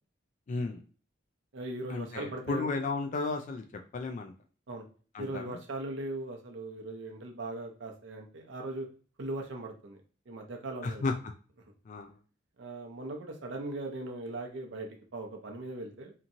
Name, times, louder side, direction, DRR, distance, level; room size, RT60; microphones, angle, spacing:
voice 1, 0.5-0.8 1.9-3.7 3.9-4.3 5.1-5.6 10.8-11.1 11.9-12.2, left 3 dB, 40° left, 3 dB, 0.3 m, -33 dB
voice 2, 1.5-2.7 4.7-4.8 5.2-8.9 9.2-10.0 10.3-11.0 12.6-16.1, right 2 dB, 70° right, 2 dB, 0.6 m, -39 dB
2.9 x 2.6 x 2.5 m, 0.39 s
head